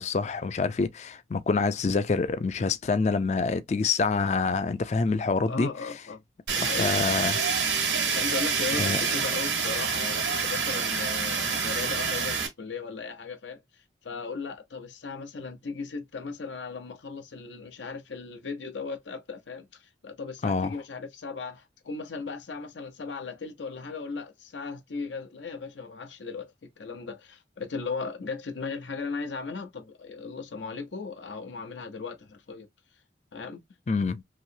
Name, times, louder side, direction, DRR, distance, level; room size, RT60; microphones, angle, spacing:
voice 1, 0.0-5.7 6.8-7.4 8.8-9.0 20.4-20.8 33.9-34.2, left 4 dB, 40° left, 0.3 m, -26 dB
voice 2, 5.5-6.2 6.5-6.9 8.1-32.7 33.3-33.6, left 4 dB, 85° left, 0.7 m, -37 dB
Fire, 6.5-12.5, right 5 dB, 90° right, 1.3 m, -27 dB
3.0 x 2.8 x 2.6 m
head